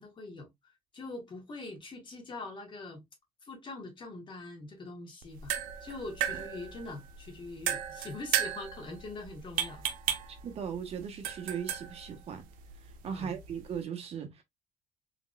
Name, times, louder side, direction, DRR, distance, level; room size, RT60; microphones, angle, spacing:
voice 1, 0.0-3.0 3.4-9.8 10.1-10.2 13.0-13.4, left 2 dB, 35° left, 1.6 m, -43 dB
sound 1, 5.2-13.8, right 10 dB, 85° right, 0.6 m, -36 dB
voice 2, 10.4-12.5 12.8-14.4, right 7 dB, 45° right, 0.9 m, -38 dB
3.9 x 3.4 x 2.2 m
cardioid pair, 125°, 14 cm